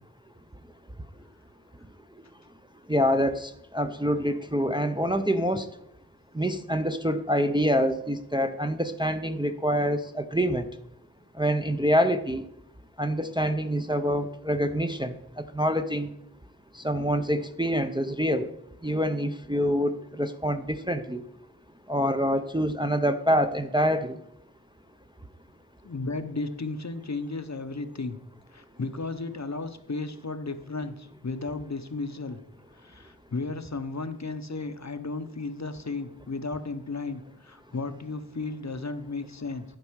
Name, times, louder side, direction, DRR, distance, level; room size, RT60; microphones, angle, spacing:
voice 1, 2.9-5.7 6.3-10.7 11.4-12.4 13.0-16.1 16.7-18.5 18.8-21.2 21.9-24.2, equal, 10° right, 7 dB, 0.5 m, -26 dB
voice 2, 25.8-28.2 28.5-32.4 32.8-39.6, left 3 dB, 45° left, 10 dB, 0.7 m, -34 dB
12.0 x 5.3 x 4.6 m, 0.78 s
wide cardioid pair, 45°, 39 cm